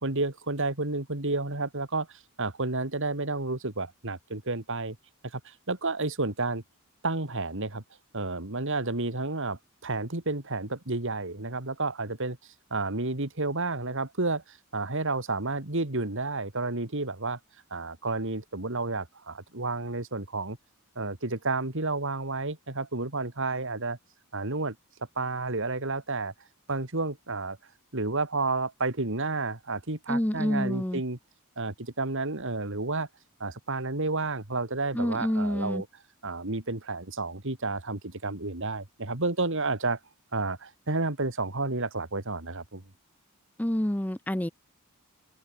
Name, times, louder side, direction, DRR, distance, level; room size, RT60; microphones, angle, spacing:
voice 1, 0.0-5.0 5.3-6.6 7.0-7.8 8.1-12.4 12.7-17.4 17.7-20.6 21.0-24.0 24.3-24.8 25.2-26.3 26.7-27.6 27.9-31.2 31.6-33.1 33.4-35.9 36.2-40.0 40.3-42.8, right 3 dB, 60° right, 2.7 m, -31 dB
voice 2, 30.1-31.0 34.9-35.8 43.6-44.5, equal, 5° left, 0.7 m, -28 dB
open air
head